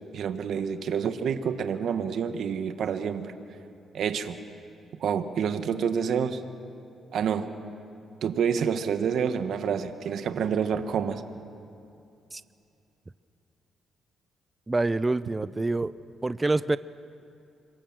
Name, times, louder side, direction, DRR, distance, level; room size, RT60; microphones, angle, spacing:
voice 1, 0.1-3.3 3.9-4.4 5.0-6.4 7.1-7.5 8.2-11.2, right 7 dB, 65° right, 9 dB, 1.5 m, -28 dB
voice 2, 14.7-15.9 16.2-16.8, right 2 dB, 20° right, 16 dB, 0.5 m, -26 dB
26.5 x 23.5 x 7.4 m, 2.7 s
cardioid pair, 90°, 0 cm